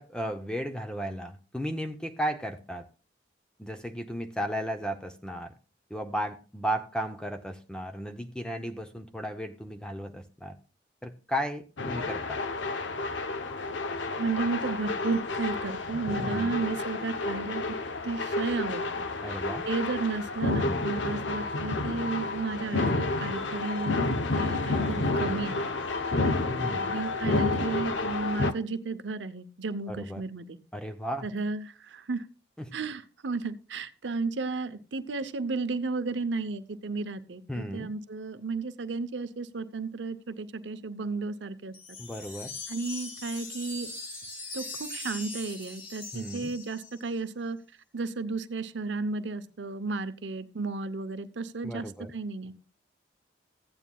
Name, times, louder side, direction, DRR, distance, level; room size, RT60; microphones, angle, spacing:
voice 1, 0.0-2.9 3.6-5.5 5.9-10.6 11.0-12.4 16.2-16.6 19.2-19.6 22.8-23.2 26.6-26.9 29.9-30.2 30.7-31.3 32.6-32.7 37.5-37.9 42.0-42.6 46.1-46.5 51.6-52.1, equal, 5° left, 7 dB, 0.6 m, -35 dB
sound 1, 11.8-28.5, left 3 dB, 75° left, 0.8 m, -30 dB
voice 2, 14.2-17.6 18.0-19.3 19.6-22.9 23.2-25.7 26.8-30.6 31.2-32.2 32.7-41.7 42.7-43.9 44.5-47.6 47.9-51.9 52.1-52.5, right 4 dB, 70° right, 12 dB, 0.7 m, -33 dB
sound 2, 41.7-47.1, left 3 dB, 50° left, 2.2 m, -41 dB
15.5 x 9.2 x 2.3 m, 0.34 s
head